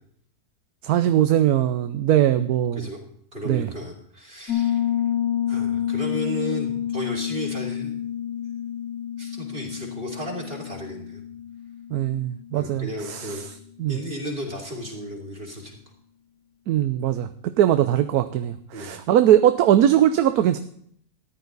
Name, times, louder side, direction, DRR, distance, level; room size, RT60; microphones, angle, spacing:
voice 1, 0.8-2.8 3.5-3.7 11.9-13.3 13.8-14.0 16.7-20.6, right 11 dB, 80° right, 10 dB, 1.1 m, -20 dB
voice 2, 3.3-4.8 5.5-7.9 9.2-11.2 12.5-13.4 13.9-15.8 18.7-19.0, equal, 40° right, -2 dB, 3.3 m, -34 dB
Piano, 4.5-13.0, left 10 dB, 80° left, 2.1 m, -29 dB
14.0 x 10.5 x 4.0 m, 0.66 s
omnidirectional pair, 1.6 m